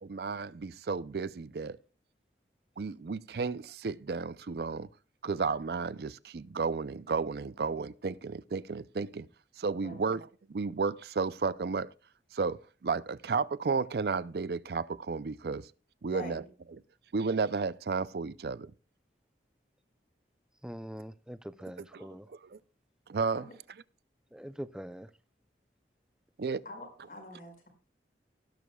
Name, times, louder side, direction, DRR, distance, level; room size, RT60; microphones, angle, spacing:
voice 1, 0.0-1.8 2.8-4.9 5.2-9.3 9.6-11.9 12.3-15.7 16.0-16.4 16.7-16.8 17.1-18.7 21.8-22.1 22.4-22.6 23.1-23.8 26.4-26.6, right 4 dB, 60° right, 0.5 m, -33 dB
voice 2, 16.1-16.5 23.4-23.5 26.6-27.7, left 1 dB, 50° left, 5.0 m, -44 dB
voice 3, 20.6-22.3 24.3-25.1, equal, 5° right, 0.4 m, -43 dB
17.5 x 11.0 x 2.3 m
head